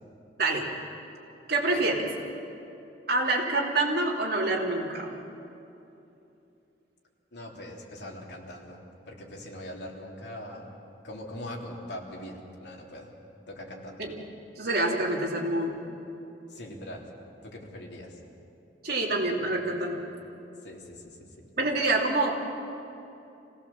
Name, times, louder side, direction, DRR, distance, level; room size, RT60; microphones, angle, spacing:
voice 1, 1.5-2.0 3.1-5.2 14.0-14.1 14.6-15.8 18.8-20.0 21.6-22.3, right 2 dB, 60° right, -4 dB, 3.0 m, -26 dB
voice 2, 7.3-10.8 11.0-13.1 13.5-14.0 16.5-17.1 17.4-18.2 20.6-21.3, left 1 dB, 70° left, -2 dB, 3.3 m, -42 dB
26.0 x 17.0 x 7.3 m, 2.8 s
head